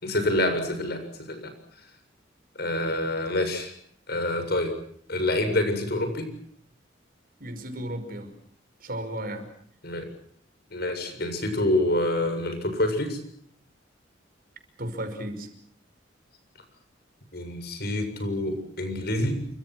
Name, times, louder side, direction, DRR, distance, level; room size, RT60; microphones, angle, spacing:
voice 1, 0.0-1.5 2.6-3.7 4.1-4.8 5.1-6.3 9.8-10.1 10.7-13.2 17.3-19.5, left 1 dB, 55° left, 8 dB, 7.4 m, -27 dB
voice 2, 7.4-8.3 8.8-9.5 14.8-15.5, right 1 dB, 50° right, 8 dB, 5.6 m, -34 dB
29.0 x 25.5 x 6.3 m, 0.63 s
head